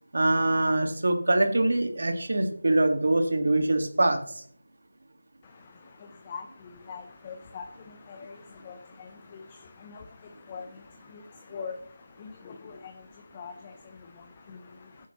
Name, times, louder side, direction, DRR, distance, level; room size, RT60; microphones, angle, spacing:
voice 1, 0.1-4.4, right 2 dB, 60° right, 6 dB, 1.8 m, -24 dB
voice 2, 5.4-15.1, left 5 dB, 20° left, 5 dB, 0.7 m, -44 dB
14.0 x 8.3 x 3.1 m, 0.63 s
figure-of-eight pair, 170°, 0 cm